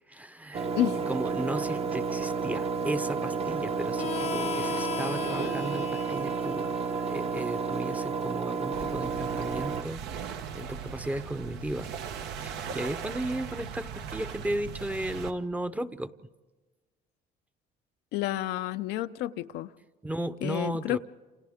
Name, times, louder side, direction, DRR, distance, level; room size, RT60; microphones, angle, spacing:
voice 1, 0.1-0.7 1.1-11.9 12.3-16.1 20.0-21.0, right 1 dB, 10° right, 11 dB, 0.7 m, -35 dB
Engine, 0.5-9.8, right 5 dB, 35° right, 0.8 m, -31 dB
voice 2, 0.7-1.0 18.1-19.7 20.4-21.0, left 13 dB, 90° left, 10 dB, 0.6 m, -30 dB
Harmonica, 4.0-9.2, left 9 dB, 40° left, 0.6 m, -39 dB
sound 1, 8.7-15.3, right 7 dB, 85° right, 1.1 m, -39 dB
29.5 x 28.0 x 3.6 m, 1.3 s
cardioid pair, 110°, 17 cm